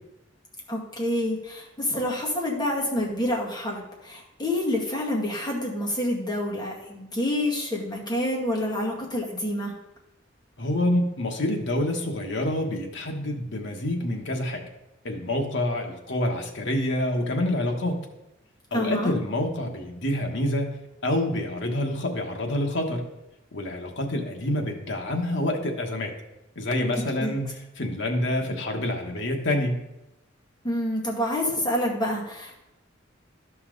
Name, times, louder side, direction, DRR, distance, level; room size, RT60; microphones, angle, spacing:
voice 1, 0.7-9.7 18.7-19.1 27.2-27.4 30.6-32.6, left 1 dB, 20° left, -3 dB, 2.1 m, -28 dB
voice 2, 10.6-14.6 15.0-18.0 18.7-20.8 21.0-23.0 23.5-26.1 26.5-27.5 27.8-29.8, left 1 dB, 65° left, 2 dB, 1.4 m, -27 dB
12.0 x 5.7 x 4.0 m, 0.94 s
head